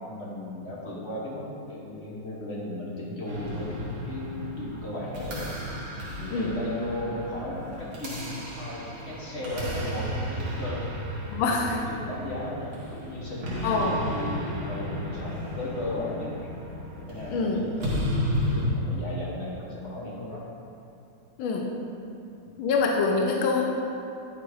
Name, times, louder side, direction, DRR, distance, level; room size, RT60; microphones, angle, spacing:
voice 1, 0.0-5.5 6.2-10.8 11.3-16.3 16.9-20.4 22.4-22.6, left 1 dB, 40° left, -6 dB, 1.2 m, -36 dB
sound 1, 3.3-18.7, equal, 65° right, 2.0 m, -34 dB
voice 2, 11.3-11.8 13.6-13.9 17.3-17.6 21.4-21.7 22.6-23.6, left 4 dB, 75° left, 0 dB, 1.4 m, -25 dB
9.9 x 3.4 x 4.7 m, 2.7 s
omnidirectional pair, 2.2 m